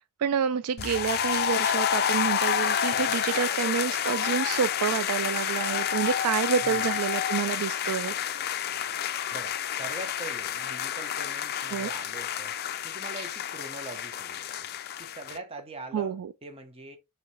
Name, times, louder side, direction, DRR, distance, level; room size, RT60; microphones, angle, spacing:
voice 1, 0.2-8.1 11.7-11.9 15.9-16.3, right 7 dB, 80° right, 0.3 m, -28 dB
sound 1, 0.8-15.4, left 9 dB, 45° left, 0.4 m, -29 dB
voice 2, 6.6-7.0 9.3-12.5 12.8-14.7 15.0-17.0, right 2 dB, 25° right, 0.8 m, -42 dB
4.6 x 3.2 x 3.2 m
head